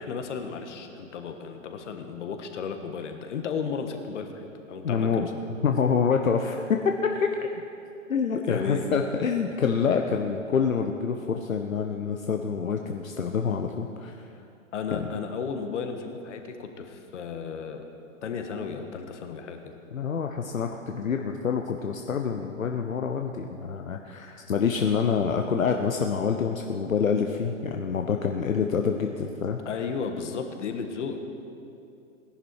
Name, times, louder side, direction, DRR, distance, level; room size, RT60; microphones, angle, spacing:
voice 1, 0.0-5.3 8.4-8.9 14.7-17.8 18.2-19.8 29.6-31.2, left 5 dB, 60° left, 6 dB, 1.5 m, -34 dB
voice 2, 4.8-7.5 8.1-14.2 14.9-15.1 19.9-29.6, left 6 dB, 80° left, 4 dB, 0.9 m, -27 dB
17.5 x 11.0 x 4.7 m, 2.7 s
figure-of-eight pair, 115°, 40 cm